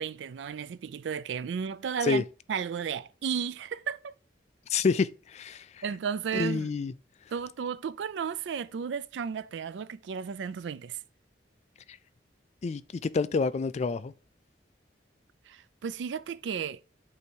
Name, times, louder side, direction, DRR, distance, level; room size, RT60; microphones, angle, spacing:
voice 1, 0.0-4.1 5.8-6.7 7.3-11.0 15.5-16.8, right 7 dB, 85° right, 0.4 m, -34 dB
voice 2, 4.7-5.8 6.3-6.9 11.9-12.0 12.6-14.1, left 4 dB, 40° left, 0.3 m, -28 dB
8.3 x 2.8 x 4.4 m
head